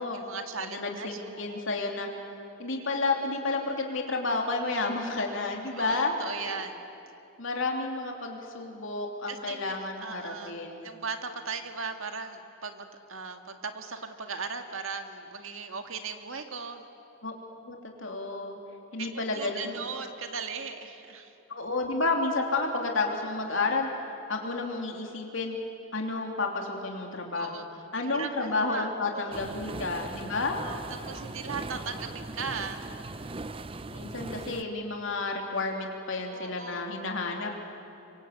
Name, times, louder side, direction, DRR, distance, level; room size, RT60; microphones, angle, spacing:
voice 1, 0.0-1.7 5.7-6.8 9.3-16.9 19.0-19.1 19.3-21.3 27.3-27.6 28.0-29.6 30.6-33.0 36.3-36.9, right 5 dB, 65° right, 6 dB, 1.9 m, -38 dB
voice 2, 0.6-2.1 2.6-6.1 6.4-6.6 7.4-10.9 17.2-17.3 17.7-18.6 18.9-19.8 21.5-23.9 24.3-25.6 25.9-27.7 27.9-30.6 33.9-37.6, left 3 dB, 60° left, 1 dB, 3.1 m, -31 dB
sound 1, 29.3-34.6, right 2 dB, 25° right, 0.6 m, -39 dB
26.0 x 24.0 x 8.3 m, 2.7 s
head